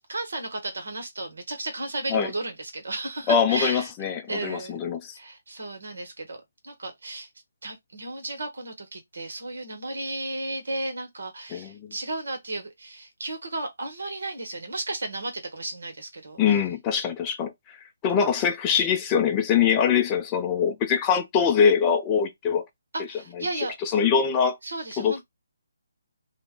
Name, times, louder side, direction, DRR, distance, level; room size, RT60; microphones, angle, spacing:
voice 1, 0.0-3.9 4.3-4.8 5.1-7.3 7.6-16.4 22.9-23.7 24.6-25.2, right 2 dB, 75° right, 1.2 m, -34 dB
voice 2, 3.3-5.1 11.5-11.9 16.4-17.5 18.0-22.6 23.4-24.6 25.0-25.2, left 7 dB, 20° left, 0.6 m, -23 dB
2.5 x 2.2 x 3.6 m
hypercardioid pair, 160°, 0 cm